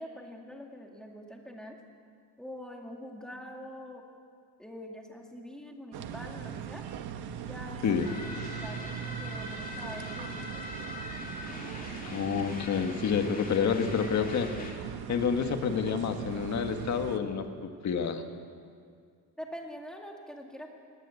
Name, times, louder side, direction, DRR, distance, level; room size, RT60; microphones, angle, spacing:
voice 1, 0.0-1.8 2.4-4.0 4.6-6.8 7.4-7.9 8.1-10.6 19.4-20.7, equal, ahead, 1 dB, 2.1 m, -44 dB
sound 1, 5.9-17.2, right 8 dB, 75° right, 1.3 m, -40 dB
sound 2, 8.0-14.7, left 2 dB, 20° left, 2.5 m, -42 dB
voice 2, 12.0-14.5 15.1-18.2, left 6 dB, 45° left, 6 dB, 1.6 m, -29 dB
19.0 x 18.5 x 8.3 m, 2.1 s
cardioid pair, 175°, 39 cm